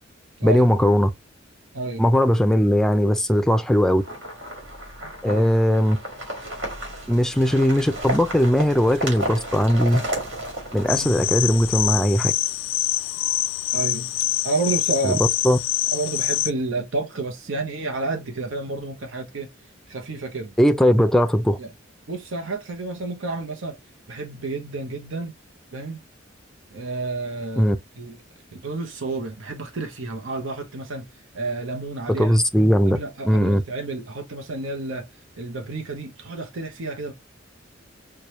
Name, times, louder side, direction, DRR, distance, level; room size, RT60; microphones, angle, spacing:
voice 1, 0.4-1.1 2.0-4.0 5.2-6.0 7.1-10.0 10.7-12.3 15.0-15.6 20.6-21.6 27.6-27.8 32.1-33.0 33.2-33.6, equal, 5° left, 0.4 m, -19 dB
sound 1, 4.0-12.0, right 1 dB, 70° right, 2.0 m, -33 dB
sound 2, 10.9-16.5, left 14 dB, 80° left, 0.3 m, -25 dB
voice 2, 13.7-14.1 14.4-15.2 15.9-19.5 19.9-20.5 21.6-21.7 22.1-23.8 24.1-25.3 25.7-26.0 26.7-28.2 28.5-31.1 31.3-32.4 32.9-35.1 35.4-37.1, right 3 dB, 85° right, 0.8 m, -30 dB
4.7 x 2.2 x 2.9 m
head